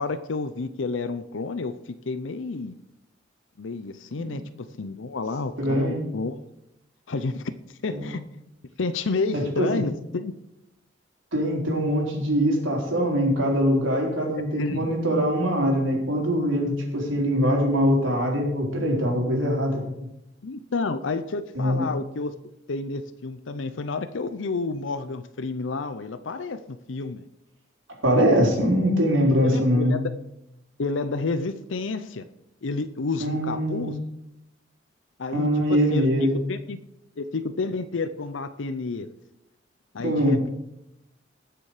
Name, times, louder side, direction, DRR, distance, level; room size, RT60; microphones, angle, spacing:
voice 1, 0.0-2.8 3.6-6.4 7.1-8.2 8.8-10.3 14.5-14.9 20.4-22.3 22.7-27.3 29.4-30.0 30.8-32.3 32.6-34.0 35.2-36.1 36.5-36.8 37.2-39.1 39.9-40.5, left 3 dB, 75° left, 11 dB, 0.6 m, -30 dB
voice 2, 5.6-6.1 7.9-8.1 9.6-9.8 11.3-19.8 21.5-21.9 28.0-30.0 33.2-33.9 35.3-36.4 40.0-40.4, equal, 85° right, -1 dB, 3.9 m, -23 dB
19.0 x 6.9 x 4.9 m, 0.86 s
head